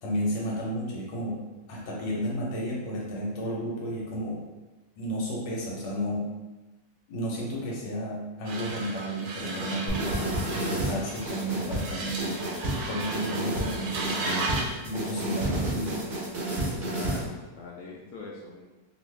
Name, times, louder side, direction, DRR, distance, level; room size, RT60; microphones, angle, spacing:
voice 1, 0.0-1.4 1.7-4.4 5.0-6.3 7.1-12.4 12.9-14.5 14.8-16.0, equal, 90° left, -3 dB, 1.5 m, -32 dB
sound 1, 8.5-14.8, right 2 dB, 75° right, 1.2 m, -35 dB
sound 2, 9.9-17.3, right 1 dB, 55° right, 0.6 m, -31 dB
voice 2, 16.6-18.6, left 3 dB, 70° left, -4 dB, 0.9 m, -43 dB
3.0 x 2.5 x 3.2 m, 1.1 s
omnidirectional pair, 1.9 m